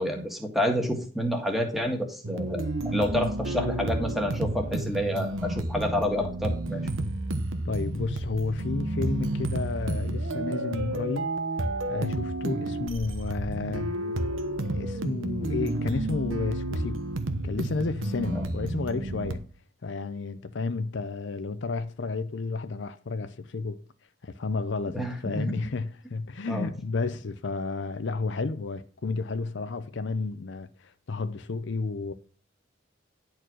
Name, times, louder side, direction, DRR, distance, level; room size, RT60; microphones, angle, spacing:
voice 1, 0.0-6.8 24.9-25.5 26.5-26.7, equal, ahead, 1.7 m, -29 dB
sound 1, 2.2-19.3, right 1 dB, 85° right, 1.1 m, -31 dB
voice 2, 7.6-11.3 11.9-13.9 14.7-17.0 17.4-19.4 19.8-23.8 24.2-32.1, left 3 dB, 65° left, 0.6 m, -31 dB
10.5 x 4.6 x 6.2 m
head